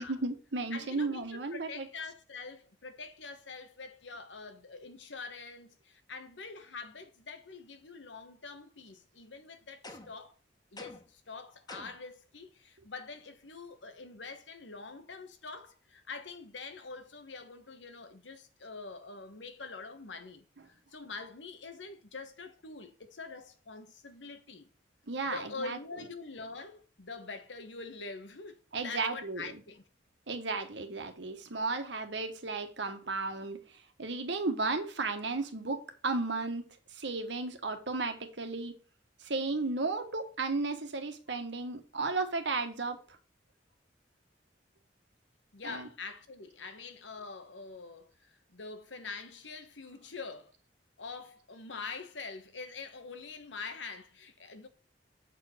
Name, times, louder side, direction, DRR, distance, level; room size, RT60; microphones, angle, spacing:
voice 1, 0.0-1.9 25.1-25.8 28.7-29.5 30.3-36.7 36.9-38.8 39.2-43.2 45.6-45.9, right 3 dB, 75° right, 1.3 m, -34 dB
voice 2, 0.7-10.4 10.7-24.7 25.2-29.8 45.5-50.5 51.0-54.7, left 4 dB, 90° left, 1.2 m, -45 dB
sound 1, 9.8-10.3 10.8-11.2 11.7-12.1, left 2 dB, 20° left, 1.1 m, -48 dB
7.5 x 4.7 x 4.9 m
head